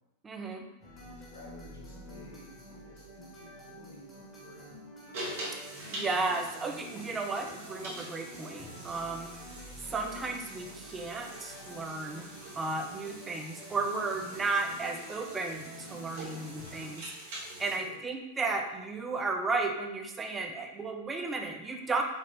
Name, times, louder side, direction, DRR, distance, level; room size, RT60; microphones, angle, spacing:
voice 1, 0.2-0.7 5.9-9.3 9.9-12.3 12.6-17.0 17.6-22.0, right 3 dB, 15° right, 3 dB, 0.5 m, -34 dB
sound 1, 0.8-16.9, equal, 20° left, 1.3 m, -49 dB
voice 2, 1.1-4.7 17.7-18.0, left 2 dB, 65° left, -2 dB, 0.9 m, -53 dB
sound 2, 5.1-17.8, right 1 dB, 55° right, 1.1 m, -45 dB
4.4 x 2.4 x 3.7 m, 0.98 s
figure-of-eight pair, 90°, 0 cm